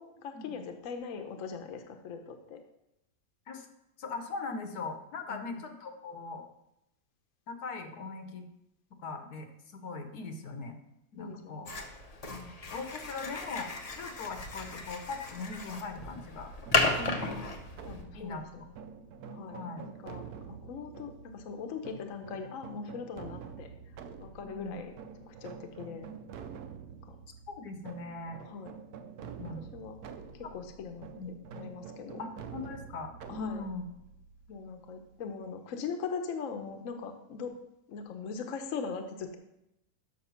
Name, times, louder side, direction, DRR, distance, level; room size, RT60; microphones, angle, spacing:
voice 1, 0.0-2.6 5.3-5.6 11.2-11.7 12.3-12.5 17.0-17.5 17.8-18.7 19.3-19.6 20.0-23.7 24.2-24.9 25.3-26.1 27.1-27.2 28.4-28.8 29.6-30.0 30.3-32.2 33.3-33.6 34.5-37.6 37.9-39.4, left 5 dB, 65° left, 5 dB, 1.1 m, -41 dB
voice 2, 4.0-6.4 7.5-8.5 9.0-10.7 11.1-11.7 12.7-16.5 17.8-18.7 19.5-19.9 24.4-24.8 25.9-26.0 27.5-28.4 29.4-29.7 30.4-30.5 31.1-31.3 32.2-33.9, left 3 dB, 85° left, 5 dB, 1.5 m, -40 dB
sound 1, 11.7-18.0, left 3 dB, 35° left, 0.6 m, -34 dB
sound 2, 16.6-35.4, right 6 dB, 85° right, 1.2 m, -47 dB
6.6 x 6.4 x 5.7 m, 0.85 s
omnidirectional pair, 1.6 m